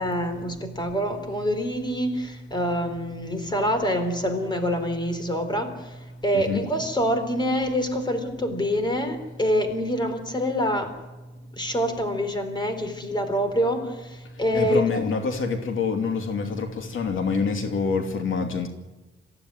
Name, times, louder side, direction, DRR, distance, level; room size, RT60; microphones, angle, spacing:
voice 1, 0.0-10.9 11.6-15.1, equal, 20° left, 8 dB, 3.9 m, -26 dB
voice 2, 6.3-6.7 14.5-18.7, left 5 dB, 70° left, 4 dB, 2.7 m, -26 dB
26.5 x 15.5 x 9.7 m, 1.2 s
wide cardioid pair, 135°, 21 cm